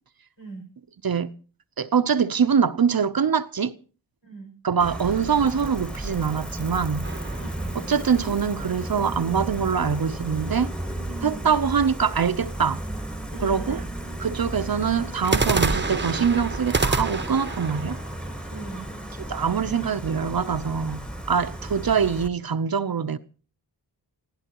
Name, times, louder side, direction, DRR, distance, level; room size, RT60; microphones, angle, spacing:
voice 1, 1.8-3.7 4.6-7.1 7.7-10.7 11.2-12.8 13.4-13.8 14.2-18.0 19.2-23.2, right 6 dB, 55° right, 0.8 m, -24 dB
voice 2, 4.2-4.5 7.3-8.0 11.3-11.5 13.3-13.9 18.5-18.9, right 3 dB, 90° left, 6.6 m, -40 dB
Gull seagull, 4.8-22.3, right 1 dB, ahead, 1.6 m, -34 dB
sound 1, 7.0-8.5 15.2-19.2, right 3 dB, 25° right, 1.0 m, -28 dB
27.5 x 16.5 x 3.0 m
wide cardioid pair, 65°, 43 cm